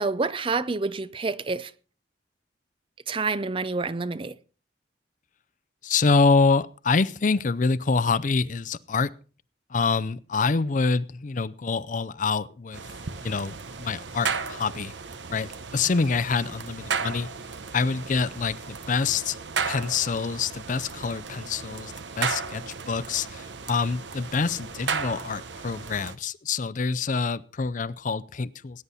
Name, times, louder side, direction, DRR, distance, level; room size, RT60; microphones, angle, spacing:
voice 1, 0.0-1.7 3.1-4.4, right 3 dB, 30° right, 0.5 m, -28 dB
voice 2, 5.8-9.1 9.7-12.8 13.2-14.9 15.3-17.3 17.7-19.4 19.7-28.8, left 4 dB, 45° left, 0.5 m, -26 dB
sound 1, 12.7-26.2, right 5 dB, 85° right, 1.0 m, -34 dB
19.0 x 9.7 x 4.1 m
head